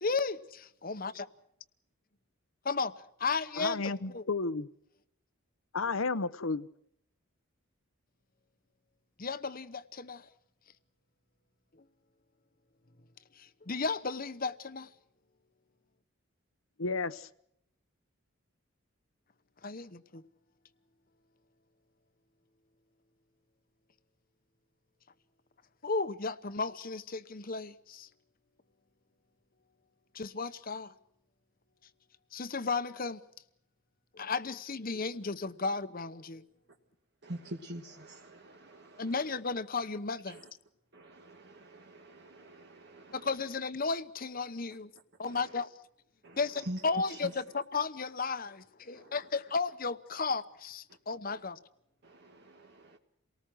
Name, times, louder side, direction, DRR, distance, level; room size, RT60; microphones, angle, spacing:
voice 1, 0.0-1.3 2.6-2.9 3.2-4.3 9.2-10.3 13.4-14.9 19.6-20.2 25.8-28.1 30.1-30.9 32.3-33.2 34.1-36.5 39.0-40.4 43.1-44.9 45.2-45.7 46.4-51.6, left 4 dB, 40° left, 0.9 m, -34 dB
voice 2, 3.6-4.7 5.7-6.7 16.8-17.3, left 3 dB, 70° left, 0.9 m, -32 dB
voice 3, 37.2-39.4 40.3-40.5 40.9-43.4 45.2-45.6 46.2-47.6 48.9-49.2 50.9-51.0 51.3-51.4 52.0-53.0, right 1 dB, 50° right, 1.4 m, -46 dB
28.5 x 19.0 x 6.3 m
head